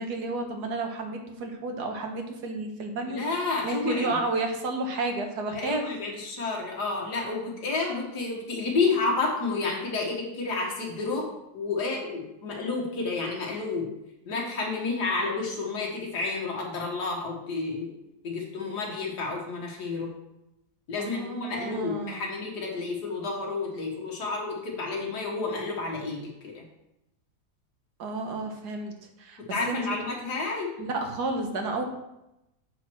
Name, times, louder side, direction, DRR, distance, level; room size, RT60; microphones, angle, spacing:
voice 1, 0.0-3.2 3.6-5.8 21.0-22.3 28.0-29.4 29.7-29.8 30.8-31.8, right 3 dB, 85° right, 4 dB, 1.7 m, -31 dB
voice 2, 3.1-4.2 5.6-11.3 11.5-13.9 14.3-17.9 18.2-20.1 20.9-26.6 29.5-30.7, left 3 dB, 90° left, -1 dB, 2.0 m, -30 dB
8.1 x 4.5 x 6.1 m, 0.89 s
omnidirectional pair, 1.7 m